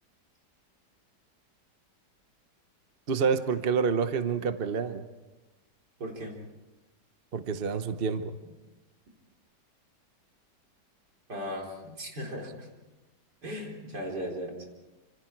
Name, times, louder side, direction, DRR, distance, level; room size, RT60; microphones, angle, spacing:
voice 1, 3.1-5.0 7.3-8.3, right 6 dB, 40° right, 9 dB, 0.9 m, -28 dB
voice 2, 6.0-6.4 11.3-12.7 13.4-14.6, equal, 65° right, 0 dB, 4.4 m, -37 dB
28.5 x 26.5 x 4.6 m, 1.1 s
omnidirectional pair, 1.9 m